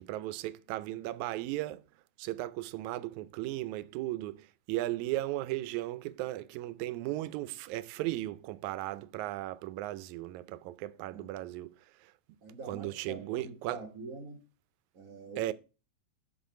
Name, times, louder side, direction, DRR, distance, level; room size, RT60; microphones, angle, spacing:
voice 1, 0.0-1.8 2.2-11.7 12.7-13.8 15.4-15.5, right 16 dB, 85° right, 1.9 m, -36 dB
voice 2, 11.1-11.4 12.4-14.4 14.9-15.5, right 3 dB, 45° right, 1.2 m, -45 dB
7.4 x 6.2 x 4.6 m
omnidirectional pair, 3.3 m